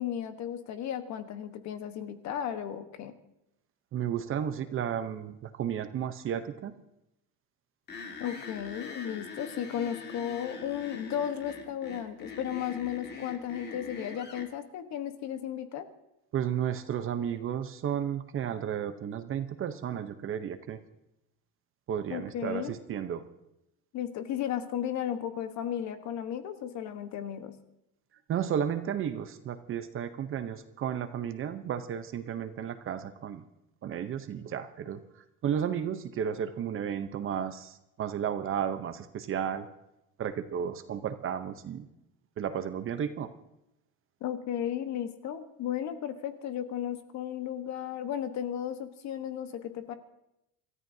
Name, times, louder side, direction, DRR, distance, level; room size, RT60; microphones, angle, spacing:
voice 1, 0.0-3.1 8.2-15.9 22.1-22.7 23.9-27.6 44.2-49.9, left 10 dB, 50° left, 9 dB, 1.2 m, -34 dB
voice 2, 3.9-6.8 16.3-20.8 21.9-23.2 28.3-33.4 33.8-35.0 35.4-39.7 40.2-41.9 42.4-43.3, right 9 dB, 35° right, 10 dB, 0.8 m, -33 dB
sound 1, 7.9-14.5, left 4 dB, 30° left, 1.8 m, -43 dB
26.5 x 13.5 x 2.8 m, 0.87 s
cardioid pair, 140°, 36 cm